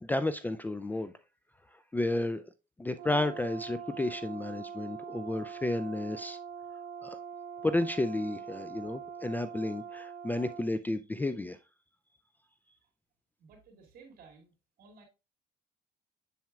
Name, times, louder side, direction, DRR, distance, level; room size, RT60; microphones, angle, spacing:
voice 1, 0.0-1.1 1.9-2.4 2.8-6.4 7.0-7.2 7.6-11.6, left 2 dB, 10° left, 0.3 m, -32 dB
Brass instrument, 2.9-10.7, right 7 dB, 90° right, 1.0 m, -43 dB
voice 2, 13.4-14.5 14.8-15.0, right 4 dB, 60° right, 2.5 m, -55 dB
7.3 x 7.0 x 2.3 m
cardioid pair, 110°, 17 cm